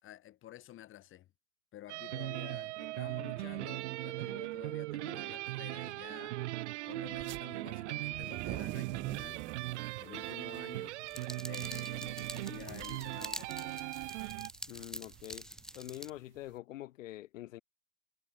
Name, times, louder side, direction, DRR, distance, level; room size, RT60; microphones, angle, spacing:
voice 1, 0.0-1.3 1.7-6.4 6.9-9.4 10.0-11.0 11.3-13.9, left 13 dB, 30° left, 4.9 m, -51 dB
sound 1, 1.9-14.5, right 18 dB, 55° right, 0.8 m, -39 dB
sound 2, 7.1-7.4 8.0-16.5, right 20 dB, 25° right, 0.9 m, -46 dB
sound 3, 11.1-16.1, left 1 dB, ahead, 1.4 m, -46 dB
voice 2, 14.7-15.5 15.7-17.6, left 15 dB, 60° left, 3.4 m, -45 dB
hypercardioid pair, 135°, 42 cm